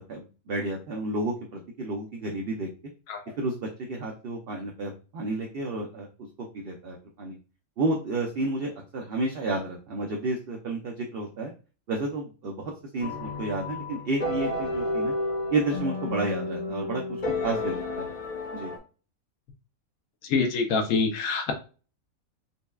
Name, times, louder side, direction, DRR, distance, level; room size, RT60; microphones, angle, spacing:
voice 1, 0.1-2.7 3.4-6.1 6.5-7.4 7.8-11.5 11.9-15.1 15.5-17.0 17.4-18.1 18.5-18.7, right 2 dB, 55° right, 1 dB, 0.7 m, -31 dB
sound 1, 13.0-18.8, left 2 dB, 40° left, 0.6 m, -31 dB
voice 2, 20.2-21.5, left 4 dB, 75° left, 4 dB, 1.2 m, -25 dB
5.4 x 2.2 x 2.3 m, 0.35 s
omnidirectional pair, 1.5 m